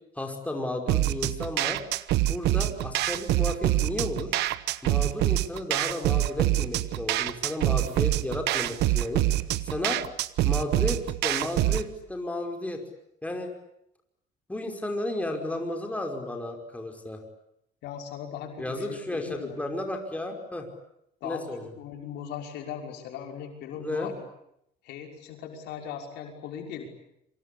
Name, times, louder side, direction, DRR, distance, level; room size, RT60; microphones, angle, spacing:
voice 1, 0.2-1.8 2.3-4.3 4.8-9.3 9.6-10.0 10.4-12.8 13.2-13.5 14.5-17.2 18.6-20.7 21.2-21.6 23.8-24.1, left 1 dB, 10° left, 3 dB, 5.5 m, -33 dB
sound 1, 0.9-11.9, right 15 dB, 85° right, 1.2 m, -26 dB
voice 2, 17.8-19.6 21.2-24.2 24.8-26.9, left 8 dB, 85° left, 2 dB, 5.7 m, -39 dB
27.5 x 25.5 x 8.7 m, 0.78 s
cardioid pair, 110°, 17 cm